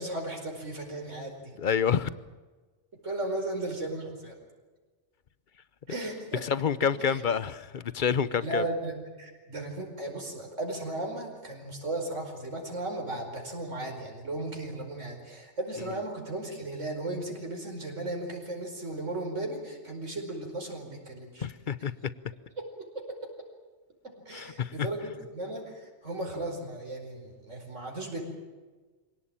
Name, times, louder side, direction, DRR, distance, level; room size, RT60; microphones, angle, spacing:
voice 1, 0.0-1.6 3.0-4.4 5.9-6.4 7.1-7.2 8.4-21.5 22.6-22.7 23.0-23.1 24.3-28.2, right 2 dB, 85° right, 1 dB, 5.2 m, -36 dB
voice 2, 1.6-2.1 6.4-8.6 21.4-22.1 24.3-24.9, left 7 dB, 45° left, 16 dB, 0.9 m, -28 dB
25.5 x 17.5 x 8.9 m, 1.3 s
omnidirectional pair, 1.2 m